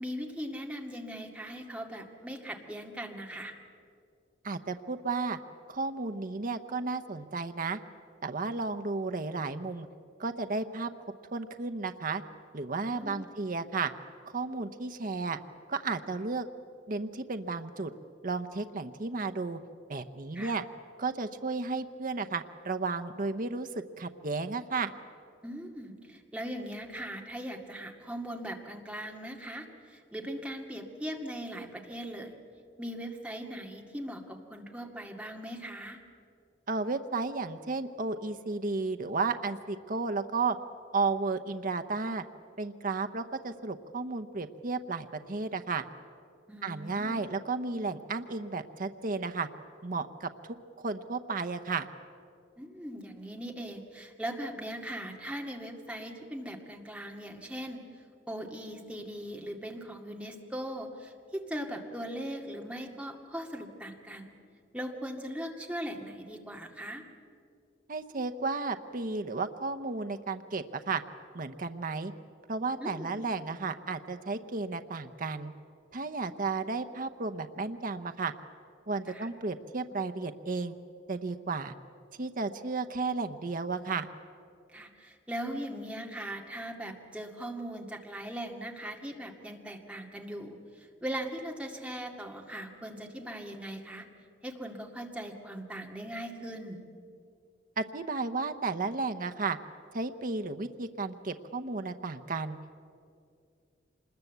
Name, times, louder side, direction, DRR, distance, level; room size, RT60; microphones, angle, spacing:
voice 1, 0.0-3.5 12.8-13.3 20.3-20.5 25.4-32.3 32.8-36.0 46.5-47.2 52.6-64.3 64.7-67.0 72.8-73.1 79.1-79.3 84.7-94.1 94.4-96.8, equal, 5° right, 2 dB, 2.1 m, -40 dB
voice 2, 4.4-5.4 5.7-7.8 8.2-9.9 10.2-10.9 11.3-12.2 12.5-13.9 14.3-15.4 15.7-16.5 16.9-17.9 18.2-19.6 19.9-20.6 21.0-23.7 24.0-24.9 36.7-40.6 40.9-42.2 42.6-45.8 46.6-49.5 49.8-51.9 67.9-71.0 71.3-72.1 72.5-75.5 75.9-78.3 78.9-80.7 81.1-81.7 82.2-84.1 97.8-99.6 99.9-102.6, right 3 dB, 45° right, 8 dB, 0.8 m, -33 dB
25.5 x 21.0 x 8.1 m, 2.4 s
head